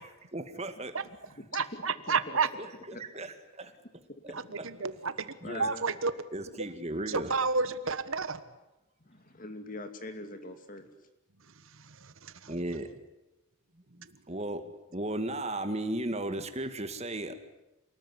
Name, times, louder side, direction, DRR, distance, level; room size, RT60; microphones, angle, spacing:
voice 1, 0.3-0.9 3.0-3.7 4.2-4.4 5.4-5.6 6.3-7.3 12.5-12.9 14.3-14.6 14.9-17.3, right 1 dB, 30° right, 9 dB, 2.1 m, -35 dB
voice 2, 1.5-2.5 4.3-6.1 6.5-6.6 6.9-8.4 11.4-12.5 14.0-14.2, right 4 dB, 65° right, 13 dB, 1.4 m, -32 dB
voice 3, 2.1-2.4 2.9-3.0 3.6-3.7 5.4-5.8 9.0-10.9, left 2 dB, 35° left, 8 dB, 2.6 m, -42 dB
28.5 x 19.5 x 10.0 m, 0.98 s
head